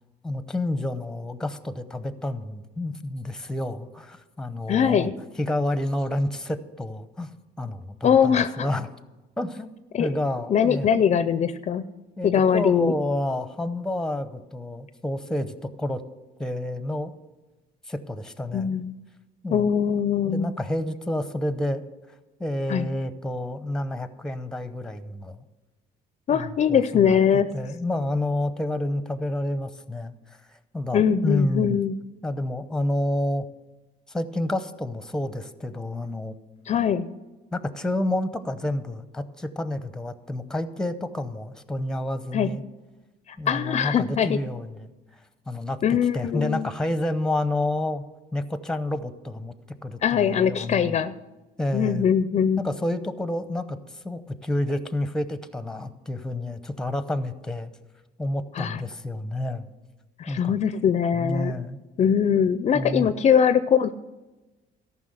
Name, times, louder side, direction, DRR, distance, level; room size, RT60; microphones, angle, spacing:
voice 1, 0.2-5.1 5.4-7.3 7.6-8.9 9.4-9.7 10.0-10.9 12.2-16.0 16.4-17.1 17.9-18.8 19.4-19.7 20.2-21.8 22.4-25.4 26.3-31.8 32.2-33.5 34.1-36.3 37.5-42.6 43.4-44.9 45.5-48.0 48.3-49.5 49.8-51.0 51.6-52.1 52.6-57.7 58.2-59.7 60.3-60.6 61.1-61.8 62.7-63.1, left 1 dB, 5° left, 12 dB, 0.7 m, -29 dB
voice 2, 4.7-5.1 8.0-8.7 9.9-10.1 10.5-11.8 12.2-12.9 18.5-18.9 19.5-20.5 22.7-22.9 26.3-27.5 30.9-32.0 36.7-37.1 42.3-42.5 43.3-44.4 45.8-46.7 50.0-51.1 51.7-52.6 58.5-58.8 60.2-61.5 62.0-63.9, left 8 dB, 40° left, 13 dB, 0.5 m, -22 dB
13.5 x 5.9 x 7.9 m, 1.1 s
cardioid pair, 110°, 17 cm